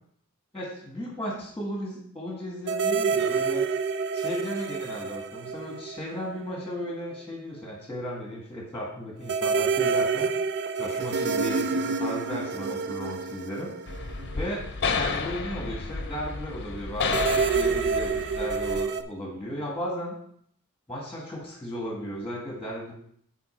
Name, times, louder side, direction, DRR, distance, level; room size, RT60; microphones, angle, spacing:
voice 1, 0.5-3.7 4.1-10.3 10.8-13.7 14.4-14.6 14.9-20.1 20.9-22.9, equal, 5° left, -3 dB, 1.6 m, -35 dB
sound 1, 2.7-6.4 6.7-6.8 9.3-14.7 17.0-19.0, right 5 dB, 50° right, 0.4 m, -28 dB
sound 2, 13.9-18.8, left 4 dB, 50° left, 0.7 m, -31 dB
8.4 x 4.3 x 4.4 m, 0.66 s
head